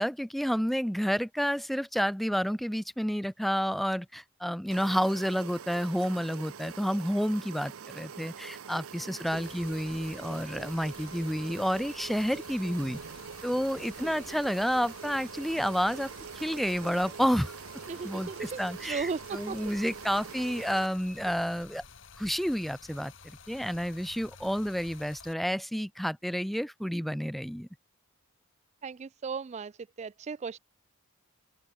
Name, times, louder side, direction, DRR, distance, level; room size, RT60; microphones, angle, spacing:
voice 1, 0.0-13.0 13.4-17.5 18.0-21.8 22.2-27.7, equal, ahead, 0.7 m, -30 dB
sound 1, 4.7-20.9, right 6 dB, 75° right, 0.6 m, -44 dB
voice 2, 9.0-9.5 14.0-14.4 17.9-19.8 28.8-30.6, right 5 dB, 30° right, 0.3 m, -37 dB
Stream, 9.3-25.3, left 5 dB, 60° left, 2.8 m, -52 dB
open air
head